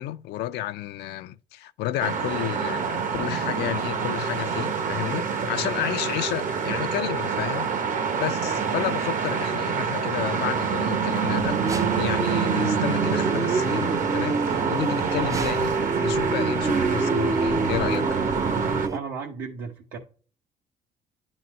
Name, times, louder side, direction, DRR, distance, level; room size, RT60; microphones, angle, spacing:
voice 1, 0.0-7.7 8.2-15.8 16.0-18.2, left 13 dB, 75° left, 0.4 m, -31 dB
sound 1, 2.0-18.9, right 6 dB, 50° right, 0.9 m, -26 dB
sound 2, 11.3-19.0, right 3 dB, 20° right, 0.4 m, -27 dB
voice 2, 18.9-20.0, right 5 dB, 80° right, 1.0 m, -35 dB
10.0 x 4.0 x 3.0 m
cardioid pair, 110°, 17 cm